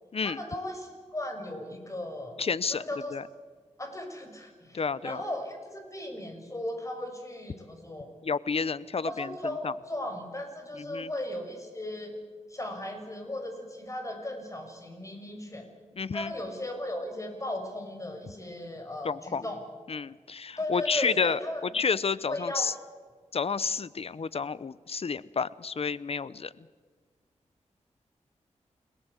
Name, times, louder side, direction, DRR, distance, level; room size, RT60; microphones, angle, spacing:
voice 1, 0.2-2.4 2.7-3.1 3.8-8.1 9.0-12.2 12.5-15.7 16.1-19.6 20.6-21.6 22.3-22.7, left 1 dB, 25° left, 5 dB, 6.1 m, -36 dB
voice 2, 2.4-2.8 3.1-3.3 4.7-5.2 8.2-9.7 10.9-11.1 16.0-16.3 19.0-19.4 19.9-21.4 21.7-22.7 23.3-26.5, left 5 dB, 55° left, 18 dB, 0.7 m, -30 dB
29.0 x 18.0 x 8.2 m, 1.5 s
wide cardioid pair, 80°, 12 cm